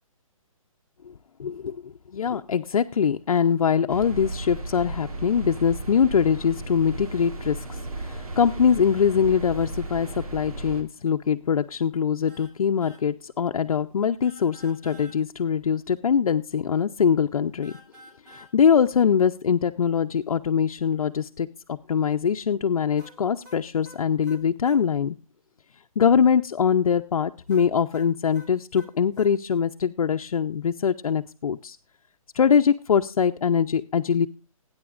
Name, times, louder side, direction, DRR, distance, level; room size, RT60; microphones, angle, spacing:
voice 1, 1.4-17.7 18.3-25.2 26.0-31.8 32.3-34.3, left 7 dB, 70° left, 5 dB, 0.7 m, -23 dB
sound 1, 3.9-10.8, right 2 dB, 80° right, 2.8 m, -35 dB
sound 2, 12.3-12.5 12.8-13.0 14.2-15.2 17.6-18.5 23.0-24.8 27.5-29.3, equal, 30° right, 2.4 m, -50 dB
20.5 x 9.7 x 2.5 m, 0.32 s
hypercardioid pair, 175°, 18 cm